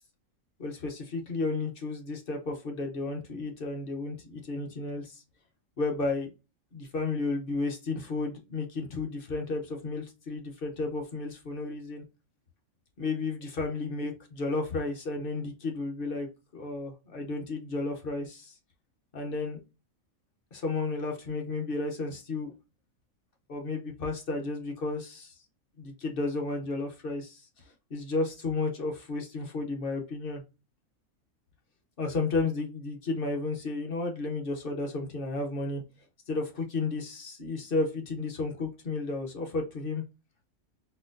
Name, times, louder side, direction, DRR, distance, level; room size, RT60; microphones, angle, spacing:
voice 1, 0.6-5.2 5.8-6.3 6.7-12.0 13.0-16.3 16.5-18.6 19.1-19.6 20.5-22.5 23.5-25.3 25.8-27.5 27.9-30.4 32.0-35.8 36.3-40.0, left 3 dB, 45° left, 2 dB, 0.9 m, -32 dB
4.2 x 2.1 x 2.5 m, 0.29 s
omnidirectional pair, 1.4 m